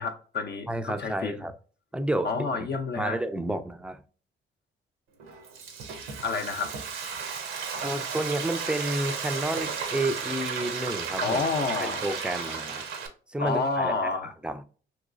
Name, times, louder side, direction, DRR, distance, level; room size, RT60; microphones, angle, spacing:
voice 1, 0.0-1.3 2.2-3.2 6.2-6.7 11.2-12.0 12.4-12.6 13.4-14.3, left 4 dB, 55° left, 0.5 m, -29 dB
voice 2, 0.7-1.5 1.9-4.0 7.8-11.4 11.8-12.9 13.3-14.6, right 1 dB, 5° right, 0.3 m, -31 dB
Frying (food), 5.2-13.1, right 6 dB, 85° right, 0.7 m, -34 dB
3.1 x 3.0 x 2.4 m
cardioid pair, 90°, 20 cm